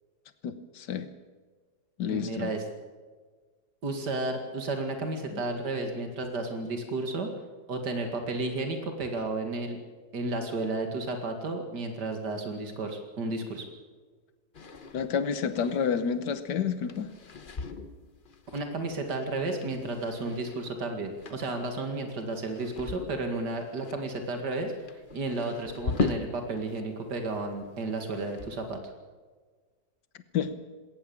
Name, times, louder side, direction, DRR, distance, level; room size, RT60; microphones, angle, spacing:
voice 1, 0.4-1.1 2.0-2.5 5.3-5.4 14.9-17.1 30.3-30.6, left 7 dB, 90° left, 11 dB, 1.7 m, -29 dB
voice 2, 2.1-2.6 3.8-7.3 7.7-9.8 10.1-13.7 18.5-28.8, right 2 dB, 80° right, 5 dB, 2.8 m, -32 dB
sound 1, 14.5-26.8 27.1-28.8, left 4 dB, 35° left, 1.2 m, -39 dB
20.5 x 18.5 x 7.1 m, 1.4 s
omnidirectional pair, 1.8 m